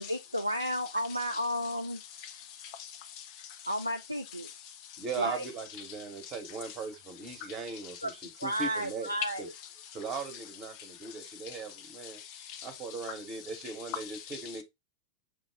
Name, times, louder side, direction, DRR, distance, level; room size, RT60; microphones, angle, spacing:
voice 1, 0.0-2.0 3.6-4.5 5.2-5.4 8.0-8.1 8.4-9.5, equal, 90° right, 0.3 m, -32 dB
voice 2, 2.2-3.6 4.9-5.0 10.8-11.3 12.0-12.7 14.1-14.4, left 9 dB, 45° left, 0.6 m, -46 dB
voice 3, 5.0-9.1 9.4-9.5 9.9-12.2 12.6-14.6, right 4 dB, 30° right, 1.1 m, -39 dB
5.3 x 2.3 x 3.5 m
figure-of-eight pair, 90°, 0 cm